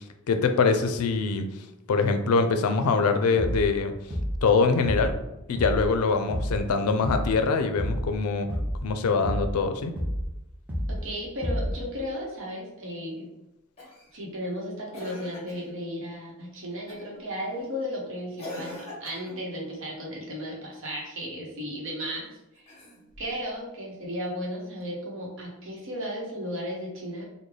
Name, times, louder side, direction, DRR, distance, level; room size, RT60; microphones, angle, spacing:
voice 1, 0.3-1.5 1.9-3.9 4.4-5.1 5.5-8.5 8.8-9.9, left 4 dB, 90° left, 7 dB, 0.4 m, -23 dB
sound 1, 3.4-3.7 4.1-4.5 4.8-5.2 5.6-5.9 6.3-6.7 7.0-7.4 7.8-8.1 8.5-8.9 9.2-9.6 10.0-10.3 10.7-11.1 11.4-11.8, equal, 10° right, 0.6 m, -29 dB
voice 2, 10.9-13.3 14.1-22.3 22.5-22.7 23.2-27.2, equal, 60° right, -3 dB, 1.0 m, -35 dB
Cough, 13.8-14.1 14.9-15.7 16.9-17.2 18.4-19.4 22.5-23.3 24.8-24.9, left 1 dB, 30° left, 1.1 m, -42 dB
3.7 x 2.2 x 3.2 m, 0.92 s
head